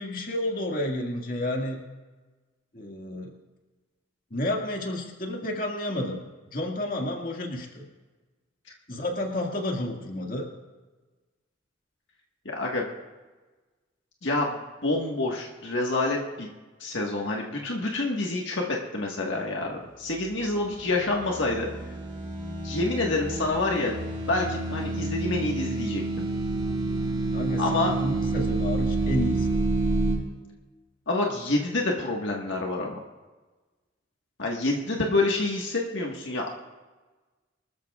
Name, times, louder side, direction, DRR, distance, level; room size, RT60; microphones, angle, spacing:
voice 1, 0.0-1.8 2.7-3.3 4.3-6.2 6.5-7.8 8.9-10.5 27.3-29.6, left 1 dB, 45° left, 0 dB, 2.0 m, -31 dB
voice 2, 12.4-12.8 14.2-16.5 16.8-18.6 18.9-21.7 22.6-24.0 24.3-26.2 27.6-27.9 31.1-33.0 34.4-36.5, left 2 dB, 70° left, -1 dB, 1.5 m, -27 dB
sound 1, 20.3-30.1, right 2 dB, 20° right, 3.7 m, -29 dB
24.5 x 13.5 x 2.4 m, 1.3 s
head